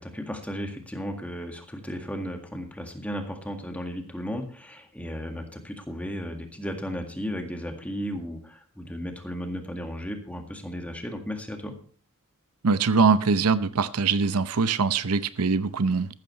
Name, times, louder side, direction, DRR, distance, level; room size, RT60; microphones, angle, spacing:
voice 1, 0.0-11.7, equal, 5° left, 1.9 m, -35 dB
voice 2, 12.6-16.1, right 4 dB, 85° right, 0.7 m, -22 dB
14.5 x 12.5 x 3.2 m
head